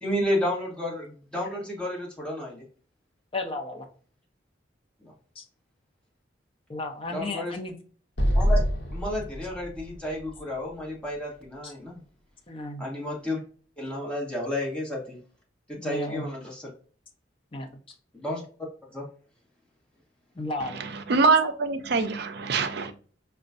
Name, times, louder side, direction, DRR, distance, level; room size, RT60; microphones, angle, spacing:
voice 1, 0.0-2.6 5.0-5.1 7.1-7.5 8.3-8.6 8.9-12.0 12.8-13.4 13.8-15.2 15.8-16.6 18.1-18.4 18.9-19.0, left 1 dB, 5° left, 1.4 m, -31 dB
voice 2, 3.3-3.9 5.4-5.5 6.7-7.8 11.6-11.7 12.5-12.8 15.8-16.4 17.5-17.7 20.4-20.8, left 2 dB, 30° left, 0.6 m, -34 dB
Explosion, 8.2-11.5, equal, 80° left, 0.8 m, -27 dB
voice 3, 21.1-22.9, right 4 dB, 60° right, 0.5 m, -23 dB
5.1 x 2.2 x 2.5 m
head